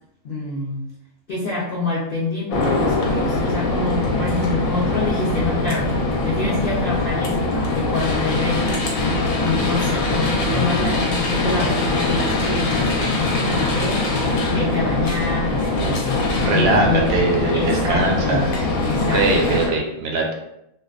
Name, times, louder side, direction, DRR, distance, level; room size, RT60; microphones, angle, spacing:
voice 1, 0.2-0.9 1.3-8.8 9.3-14.2 14.5-17.1 17.5-18.5 18.8-19.6, left 2 dB, 60° left, -7 dB, 0.6 m, -27 dB
sound 1, 2.5-19.7, left 2 dB, 80° left, 1.0 m, -22 dB
voice 2, 16.4-18.5 19.1-20.3, right 2 dB, 70° right, 0 dB, 0.5 m, -21 dB
2.5 x 2.2 x 2.3 m, 0.82 s
omnidirectional pair, 1.5 m